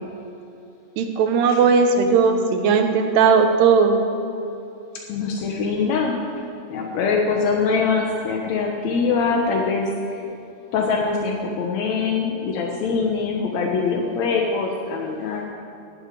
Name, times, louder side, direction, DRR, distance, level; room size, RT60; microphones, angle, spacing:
voice 1, 1.0-4.0, right 5 dB, 90° right, 5 dB, 3.2 m, -17 dB
voice 2, 5.1-6.2 6.7-10.2 10.7-15.5, left 4 dB, 70° left, 0 dB, 1.7 m, -23 dB
15.5 x 8.3 x 10.0 m, 2.7 s
omnidirectional pair, 4.6 m